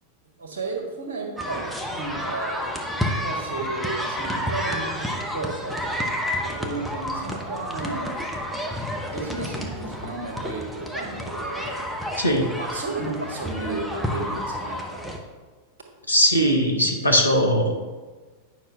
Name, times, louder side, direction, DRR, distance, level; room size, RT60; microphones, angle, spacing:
voice 1, 0.4-5.8 6.4-8.4 9.1-15.0, right 3 dB, 60° right, 1 dB, 1.5 m, -33 dB
sound 1, 1.4-15.2, equal, 5° right, 0.9 m, -30 dB
voice 2, 12.2-12.5 16.1-17.8, equal, 85° left, 2 dB, 1.0 m, -20 dB
9.2 x 5.7 x 3.4 m, 1.4 s
figure-of-eight pair, 90°, 0 cm